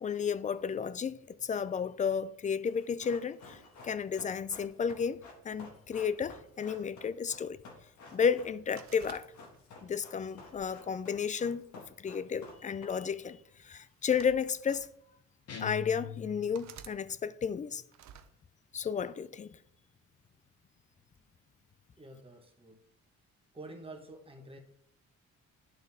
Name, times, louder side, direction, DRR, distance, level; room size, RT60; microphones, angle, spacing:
voice 1, 0.0-7.6 8.1-9.3 9.8-11.6 12.0-14.9 15.6-17.8 18.7-19.6, left 6 dB, 25° left, 0.4 m, -33 dB
Run, 2.6-13.3 13.5-13.6, left 3 dB, 70° left, 1.7 m, -52 dB
sound 1, 8.8-9.8 10.4-11.6 12.6-12.8 13.9-14.9 15.6-15.7 16.5-17.0 17.9-18.3, right 9 dB, 65° right, 0.7 m, -53 dB
sound 2, 15.5-16.8, left 7 dB, 55° left, 1.1 m, -42 dB
voice 2, 22.0-22.8 23.5-24.6, right 2 dB, 20° right, 1.4 m, -48 dB
11.0 x 3.9 x 3.6 m
cardioid pair, 90°, 30 cm